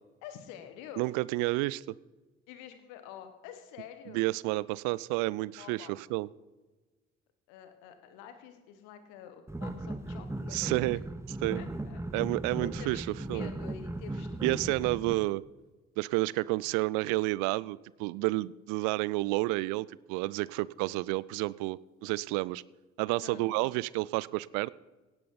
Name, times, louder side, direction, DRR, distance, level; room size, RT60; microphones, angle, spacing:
voice 1, 0.2-1.1 2.5-4.3 5.6-6.0 7.5-10.6 11.5-12.0 12.6-15.0 23.2-23.5, left 9 dB, 70° left, 9 dB, 1.4 m, -48 dB
voice 2, 1.0-1.9 4.1-6.3 10.5-11.0 11.3-11.6 12.1-13.5 14.4-15.4 16.0-22.6 23.0-24.7, right 21 dB, 65° right, 21 dB, 0.4 m, -30 dB
sound 1, 9.5-15.1, right 2 dB, 10° right, 1.0 m, -37 dB
17.0 x 10.5 x 4.0 m, 1.2 s
figure-of-eight pair, 40°, 32 cm